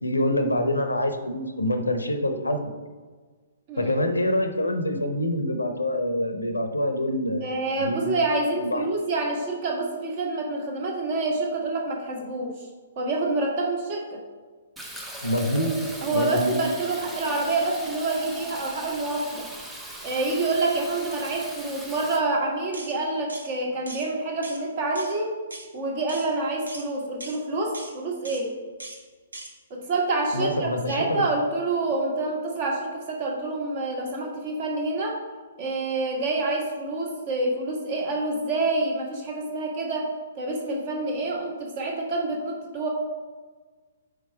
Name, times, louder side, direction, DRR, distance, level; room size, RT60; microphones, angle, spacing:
voice 1, 0.0-2.7 3.8-7.5 7.8-8.0 8.6-8.8 15.2-15.7 16.1-16.6 30.3-31.2, left 1 dB, 75° left, 7 dB, 0.7 m, -25 dB
voice 2, 7.4-12.6 13.0-14.2 16.0-19.5 20.0-25.3 25.7-28.6 29.7-35.2 35.6-42.9, right 2 dB, 35° right, 0 dB, 1.4 m, -27 dB
Fill (with liquid), 14.8-22.2, equal, 5° right, 0.7 m, -39 dB
sound 1, 22.7-22.9 23.3-23.5 23.9-24.1 24.4-24.6 25.0-25.1 25.5-25.7 26.1-26.3 26.7-26.9 27.2-27.4 27.7-27.9 28.3-28.4 28.8-29.0 29.3-29.5, right 2 dB, 70° right, 1.0 m, -40 dB
4.4 x 4.4 x 5.2 m, 1.4 s
figure-of-eight pair, 120°, 0 cm